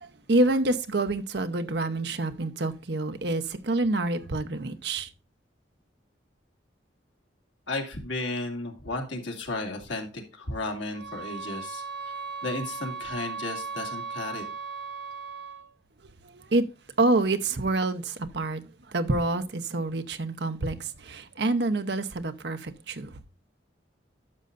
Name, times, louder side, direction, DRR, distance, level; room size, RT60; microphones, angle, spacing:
voice 1, 0.0-5.1 16.3-16.6 17.0-18.6 18.9-23.2, right 2 dB, 60° right, 0.8 m, -27 dB
voice 2, 7.7-11.8 12.4-14.4, left 2 dB, 80° left, 2.3 m, -34 dB
sound 1, 10.9-15.7, right 5 dB, 80° right, 5.4 m, -37 dB
12.0 x 6.6 x 2.5 m
head